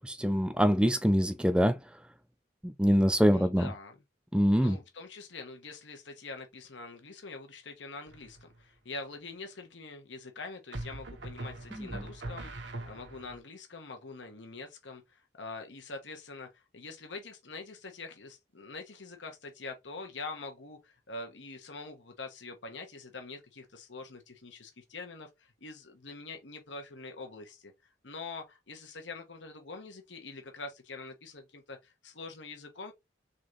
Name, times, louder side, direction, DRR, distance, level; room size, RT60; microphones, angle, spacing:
voice 1, 0.0-1.8 2.6-3.7 4.3-4.8 11.8-12.0, equal, 5° right, 0.5 m, -25 dB
voice 2, 3.3-4.0 4.5-27.7 28.0-32.9, left 3 dB, 85° left, 1.2 m, -44 dB
sound 1, 8.1-8.6 10.7-13.4, right 2 dB, 75° right, 1.2 m, -41 dB
4.1 x 3.9 x 3.1 m
head